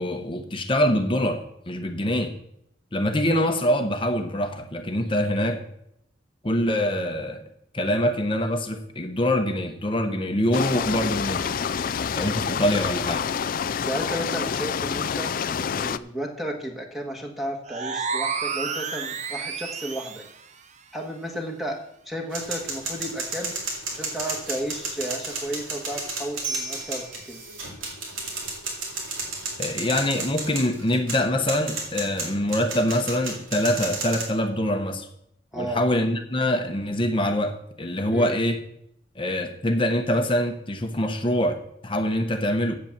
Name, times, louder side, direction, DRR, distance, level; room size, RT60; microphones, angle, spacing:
voice 1, 0.0-2.3 2.9-5.6 6.4-7.4 7.7-11.5 12.2-13.2 29.6-35.1 35.5-38.6 39.2-42.8, left 1 dB, 25° left, 5 dB, 0.9 m, -24 dB
sound 1, 10.5-16.0, left 7 dB, 45° left, 0.4 m, -27 dB
voice 2, 13.7-15.3 15.7-20.2 20.9-21.8 22.0-23.5 23.9-27.4 35.5-35.8 38.1-38.4, right 1 dB, ahead, 0 dB, 1.4 m, -33 dB
sound 2, 17.6-20.4, right 5 dB, 35° right, 0.7 m, -30 dB
sound 3, 22.3-34.2, right 3 dB, 85° right, 3.5 m, -32 dB
8.2 x 8.1 x 7.2 m, 0.76 s
head